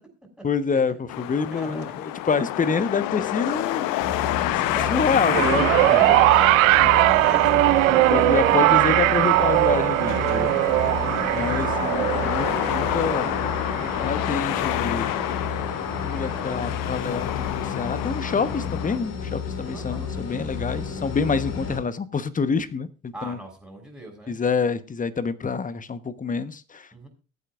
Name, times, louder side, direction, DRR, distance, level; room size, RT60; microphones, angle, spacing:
voice 1, 0.4-1.9 2.3-3.8 4.6-5.6 5.9-6.0 6.8-6.9 7.9-10.5 11.3-13.4 14.0-15.1 16.0-23.4 24.3-26.9, left 5 dB, 20° left, 15 dB, 1.1 m, -27 dB
sound 1, 1.1-19.0, left 15 dB, 50° left, 0.9 m, -29 dB
voice 2, 1.5-1.9 4.7-9.0 9.7-10.3 10.8-11.6 11.9-12.0 12.4-12.6 19.6-20.1 23.1-24.4 26.9-27.1, right 1 dB, ahead, 2 dB, 6.6 m, -39 dB
sound 2, 4.0-21.8, left 6 dB, 35° left, 2.6 m, -32 dB
sound 3, 5.3-15.7 16.7-16.8, right 19 dB, 70° right, 0.6 m, -20 dB
22.0 x 8.9 x 2.5 m, 0.36 s
figure-of-eight pair, 55°, 42 cm